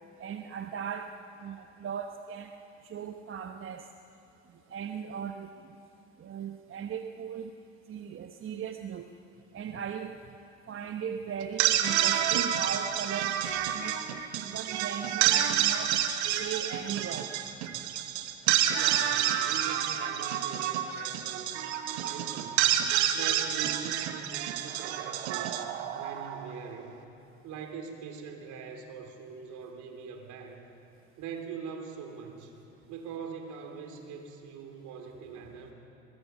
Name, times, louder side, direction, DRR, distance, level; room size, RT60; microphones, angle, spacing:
voice 1, 0.2-1.1 1.4-2.5 2.8-3.8 4.7-5.5 6.2-7.5 7.9-9.1 9.5-10.2 10.7-13.4 13.7-14.0 14.3-16.0 16.3-17.3, right 8 dB, 40° right, 6 dB, 1.1 m, -38 dB
sound 1, 11.4-26.7, right 11 dB, 80° right, 1.3 m, -29 dB
voice 2, 18.7-21.6 22.0-22.7 23.1-25.5 25.9-26.9 27.4-30.6 31.2-32.6 32.9-35.7, right 6 dB, 60° right, 4 dB, 3.3 m, -42 dB
22.5 x 22.0 x 5.8 m, 2.8 s
hypercardioid pair, 65°, 33 cm